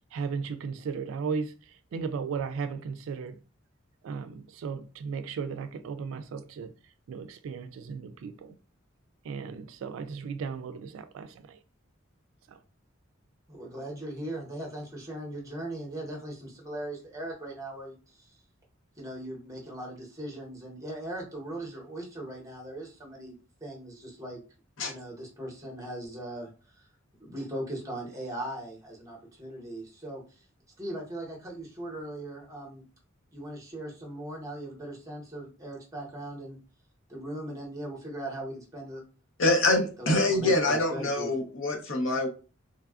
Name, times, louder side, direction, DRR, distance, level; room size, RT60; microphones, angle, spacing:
voice 1, 0.1-3.4 4.0-6.7 7.1-8.6 9.2-11.6 12.5-12.6, right 5 dB, 75° right, 0.3 m, -36 dB
voice 2, 13.5-18.3 19.0-23.3 23.6-24.4 24.8-26.5 26.8-26.9 27.2-30.2 30.8-32.8 33.3-36.6 37.1-39.0 40.0-41.3, right 1 dB, 15° right, 0.9 m, -39 dB
voice 3, 39.4-42.3, left 2 dB, 65° left, 0.8 m, -25 dB
3.2 x 2.3 x 2.3 m
head